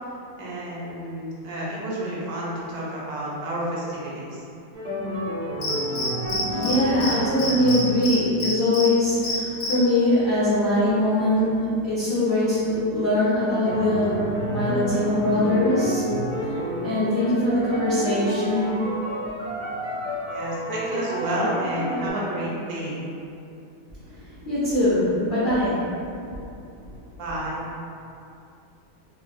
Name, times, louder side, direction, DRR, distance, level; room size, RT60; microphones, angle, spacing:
voice 1, 0.4-4.4 20.3-23.0 27.2-27.6, right 1 dB, 75° right, -6 dB, 1.0 m, -30 dB
sound 1, 4.7-8.0 9.4-9.7 10.9-11.4 11.8-11.9 13.6-22.1, equal, 45° right, 0.6 m, -30 dB
Cricket, 5.6-6.8 7.0-7.1 7.4-8.9 9.2-9.7, left 3 dB, 90° left, 1.2 m, -27 dB
voice 2, 6.5-16.1 16.4-18.8 24.1-26.2, left 1 dB, 65° left, -12 dB, 0.5 m, -22 dB
2.9 x 2.2 x 2.5 m, 2.6 s
omnidirectional pair, 1.8 m